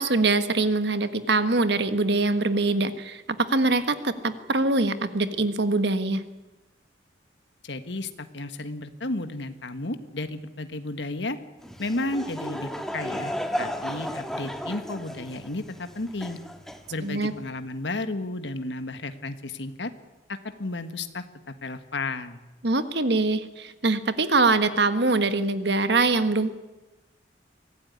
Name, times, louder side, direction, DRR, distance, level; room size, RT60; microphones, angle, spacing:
voice 1, 0.0-6.2 17.0-17.3 22.6-26.5, right 3 dB, 65° right, 11 dB, 1.5 m, -23 dB
voice 2, 7.6-11.4 11.8-16.4 16.9-19.9 20.3-21.2 21.6-22.4, left 2 dB, 75° left, 9 dB, 1.6 m, -33 dB
Laughter / Crowd, 11.6-17.4, equal, 5° left, 1.8 m, -34 dB
24.5 x 16.5 x 9.6 m, 1.1 s
head